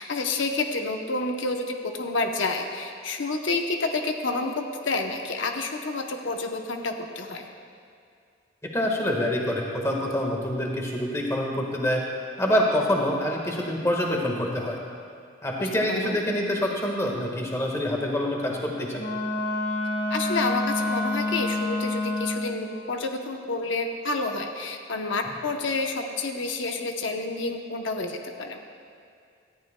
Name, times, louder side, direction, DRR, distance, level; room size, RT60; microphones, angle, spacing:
voice 1, 0.0-7.5 15.6-16.2 20.1-28.6, left 3 dB, 85° left, 4 dB, 0.8 m, -29 dB
voice 2, 8.7-12.0 12.4-14.8 15.4-19.1, left 1 dB, 15° left, -1 dB, 1.5 m, -26 dB
Wind instrument woodwind instrument, 19.0-22.6, left 2 dB, 55° left, 1.3 m, -28 dB
18.5 x 13.5 x 2.2 m, 2.3 s
head